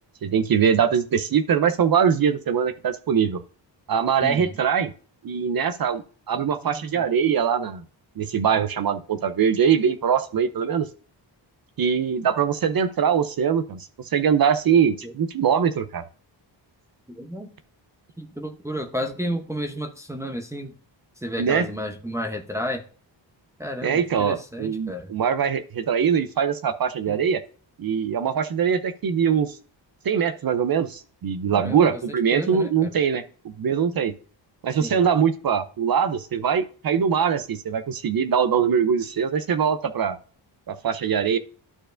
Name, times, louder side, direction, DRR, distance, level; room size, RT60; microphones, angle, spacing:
voice 1, 0.2-3.4 3.9-4.9 5.2-6.0 6.3-7.8 8.2-10.9 11.8-16.0 21.4-21.6 23.8-27.4 27.8-29.6 30.0-34.1 34.6-40.2 40.7-41.4, right 7 dB, 50° right, 10 dB, 0.7 m, -22 dB
voice 2, 4.2-4.6 6.4-7.0 15.0-15.1 17.1-17.5 18.2-20.8 21.2-22.8 23.6-25.1 27.1-27.2 31.5-32.9 34.8-35.0, equal, 5° right, 3 dB, 0.8 m, -32 dB
12.5 x 4.5 x 2.6 m, 0.40 s
wide cardioid pair, 125°, 45 cm